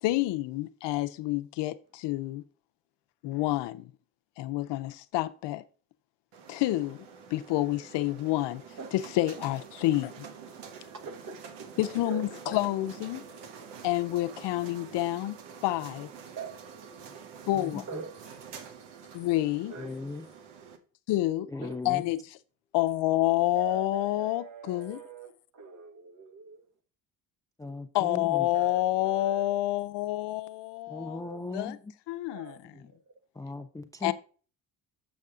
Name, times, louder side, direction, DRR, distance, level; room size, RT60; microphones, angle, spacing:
voice 1, 0.0-2.4 3.2-3.9 4.4-5.6 6.5-7.1 7.3-8.6 8.9-10.3 11.8-13.2 13.8-15.4 15.6-16.1 17.5-17.8 19.1-19.7 21.1-21.5 21.8-22.4 22.7-25.0 27.9-31.2 31.5-31.8 32.1-32.6 34.0-34.1, left 16 dB, 80° left, 0.6 m, -28 dB
sound 1, 6.3-20.8, right 6 dB, 85° right, 1.2 m, -47 dB
voice 2, 10.8-11.7 12.0-12.5 16.4-16.5 17.9-18.1 19.7-20.0 21.6-21.8 23.5-26.7 28.5-29.6 31.2-31.4 32.3-32.6 32.9-33.1, right 5 dB, 45° right, 1.6 m, -42 dB
voice 3, 19.8-20.2 21.5-22.1 27.6-28.5 30.9-31.8 33.4-34.1, left 3 dB, 10° left, 0.4 m, -37 dB
7.7 x 5.3 x 3.6 m
cardioid pair, 85°, 42 cm